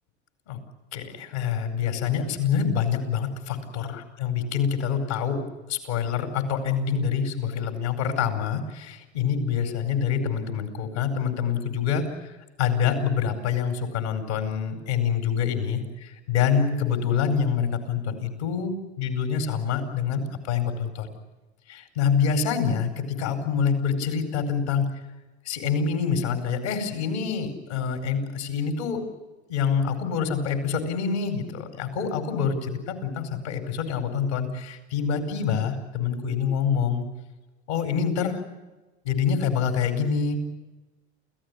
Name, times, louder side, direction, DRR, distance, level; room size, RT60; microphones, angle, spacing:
voice 1, 0.9-5.4 5.7-12.3 12.6-21.1 21.7-24.8 25.4-29.1 29.5-37.1 37.7-38.4 39.0-40.4, left 7 dB, 85° left, 5 dB, 4.7 m, -26 dB
29.0 x 15.5 x 9.9 m, 1.1 s
hypercardioid pair, 75°, 33 cm